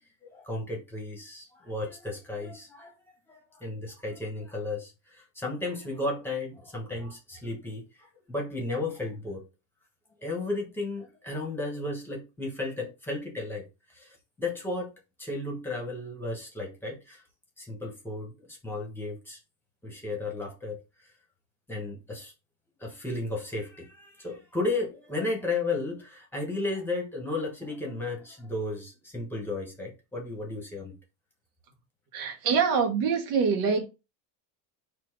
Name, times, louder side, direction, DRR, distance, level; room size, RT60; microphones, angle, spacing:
voice 1, 0.2-2.9 3.3-9.4 10.2-13.7 13.9-14.9 15.2-17.2 17.6-19.4 19.8-20.8 21.7-22.3 22.8-31.0, left 2 dB, 5° left, 1.2 m, -34 dB
voice 2, 32.1-33.9, right 6 dB, 60° right, 1.3 m, -25 dB
4.3 x 2.6 x 4.7 m
cardioid pair, 165°, 42 cm